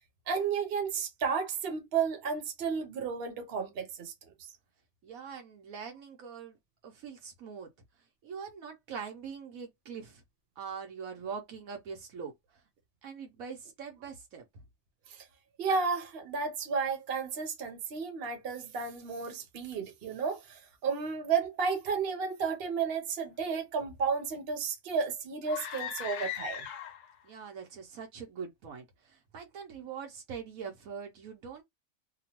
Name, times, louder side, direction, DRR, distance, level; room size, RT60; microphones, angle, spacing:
voice 1, 0.3-4.1 4.4-4.5 15.1-15.2 15.6-26.7, right 5 dB, 50° right, 1.0 m, -32 dB
voice 2, 5.0-6.6 6.8-7.7 8.2-10.2 10.6-12.6 13.0-14.5 27.2-31.6, right 6 dB, 80° right, 1.2 m, -43 dB
sound 1, 25.4-27.2, left 9 dB, 65° left, 0.9 m, -39 dB
3.0 x 2.2 x 2.8 m
omnidirectional pair, 1.4 m